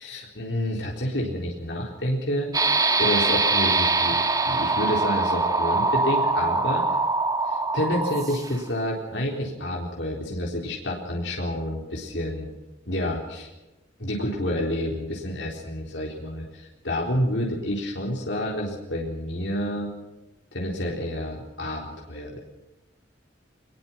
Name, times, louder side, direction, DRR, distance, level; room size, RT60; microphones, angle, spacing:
voice 1, 0.0-2.5 3.0-4.2 4.4-7.0 7.5-12.5 12.9-13.5 14.0-19.9 20.5-22.4, left 1 dB, 80° left, -1 dB, 4.1 m, -29 dB
sound 1, 2.5-8.7, right 3 dB, 20° right, 1.8 m, -23 dB
23.5 x 21.5 x 6.0 m, 1.0 s
head